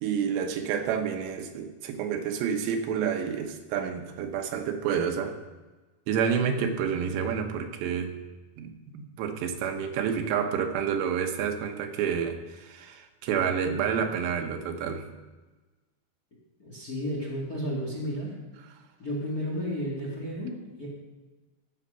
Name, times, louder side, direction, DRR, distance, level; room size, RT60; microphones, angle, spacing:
voice 1, 0.0-5.4 6.1-8.1 8.6-15.1, right 7 dB, 85° right, 5 dB, 3.2 m, -29 dB
voice 2, 16.6-18.3 19.0-20.9, equal, 30° left, -4 dB, 1.7 m, -32 dB
14.5 x 6.4 x 5.6 m, 1.2 s
omnidirectional pair, 4.9 m